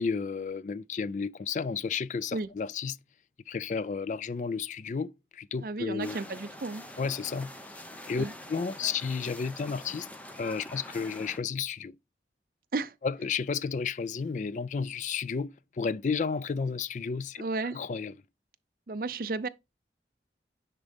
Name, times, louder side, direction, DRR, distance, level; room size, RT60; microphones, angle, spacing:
voice 1, 0.0-3.0 3.5-6.2 7.0-7.5 8.1-10.1 10.4-12.0 13.0-17.4 17.7-18.1, left 5 dB, 40° left, 0.3 m, -32 dB
voice 2, 5.6-6.8 8.2-8.3 12.7-12.9 17.4-17.8 18.9-19.5, right 3 dB, 50° right, 0.5 m, -33 dB
sound 1, 6.0-11.4, left 1 dB, 10° left, 0.7 m, -45 dB
9.9 x 3.8 x 3.5 m
head